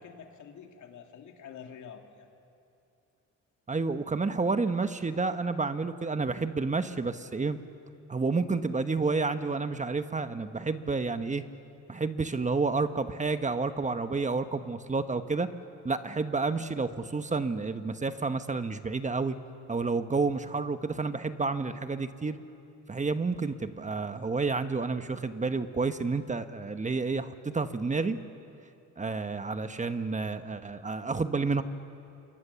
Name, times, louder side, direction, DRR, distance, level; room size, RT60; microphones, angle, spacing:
voice 1, 0.0-2.3, left 7 dB, 75° left, 3 dB, 2.7 m, -47 dB
voice 2, 3.7-7.6 8.1-11.4 11.9-15.5 15.8-19.4 19.7-22.4 22.9-28.2 29.0-31.6, right 4 dB, 25° right, 10 dB, 1.1 m, -30 dB
28.5 x 24.0 x 7.0 m, 2.6 s
cardioid pair, 90°, 30 cm